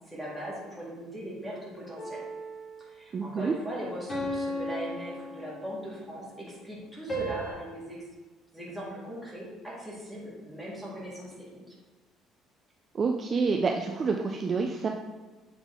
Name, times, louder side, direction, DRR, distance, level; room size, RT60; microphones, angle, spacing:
voice 1, 0.1-2.2 2.8-8.0 8.5-11.7, equal, ahead, -6 dB, 1.8 m, -39 dB
sound 1, 2.0-3.0 4.1-6.0 7.1-7.5, equal, 25° left, 1.8 m, -35 dB
voice 2, 3.1-3.5 12.9-14.9, right 4 dB, 30° right, 3 dB, 0.3 m, -28 dB
7.1 x 3.9 x 3.6 m, 1.3 s
cardioid pair, 150°, 0 cm